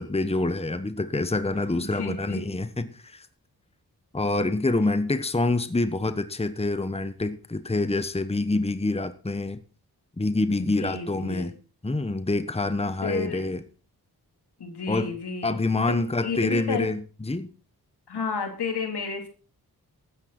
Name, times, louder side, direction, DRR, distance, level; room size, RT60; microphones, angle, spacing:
voice 1, 0.0-3.3 4.1-9.6 10.2-11.5 11.8-13.6 14.9-15.1 15.4-17.5, left 2 dB, 15° left, 1.2 m, -26 dB
voice 2, 1.7-2.4 10.6-11.5 13.0-13.4 14.6-15.5 15.9-16.9 18.1-19.3, left 5 dB, 80° left, 3.8 m, -31 dB
15.0 x 13.0 x 4.4 m
cardioid pair, 50°, 39 cm